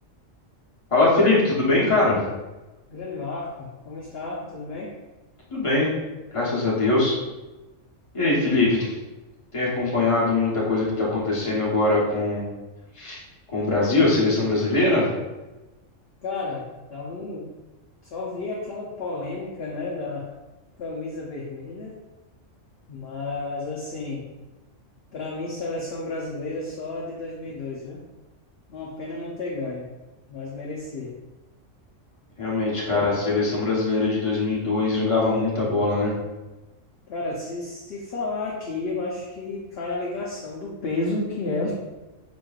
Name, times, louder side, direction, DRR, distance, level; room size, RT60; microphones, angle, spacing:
voice 1, 0.9-2.2 5.5-5.9 6.3-7.1 8.1-8.9 9.5-12.5 13.0-13.2 13.5-15.1 32.4-36.1, left 2 dB, 25° left, -6 dB, 1.1 m, -22 dB
voice 2, 2.9-4.9 16.2-17.6 18.0-20.3 20.8-22.0 22.9-24.3 25.1-28.0 28.7-29.9 30.3-31.1 37.1-41.7, left 3 dB, 60° left, -4 dB, 0.8 m, -32 dB
5.1 x 3.0 x 2.3 m, 1.1 s
omnidirectional pair, 1.3 m